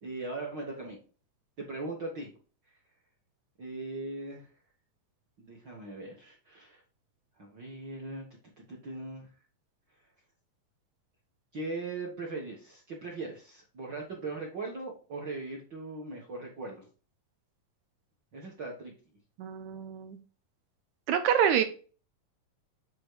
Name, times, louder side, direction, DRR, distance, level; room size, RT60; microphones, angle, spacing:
voice 1, 0.0-1.0 1.6-2.3 3.6-4.5 5.4-6.8 7.4-8.3 8.7-9.3 11.5-16.9 18.3-18.9, right 3 dB, 55° right, -1 dB, 1.2 m, -39 dB
voice 2, 19.4-20.2 21.1-21.6, right 9 dB, 80° right, 9 dB, 1.7 m, -26 dB
8.7 x 3.1 x 4.7 m, 0.37 s
omnidirectional pair, 4.0 m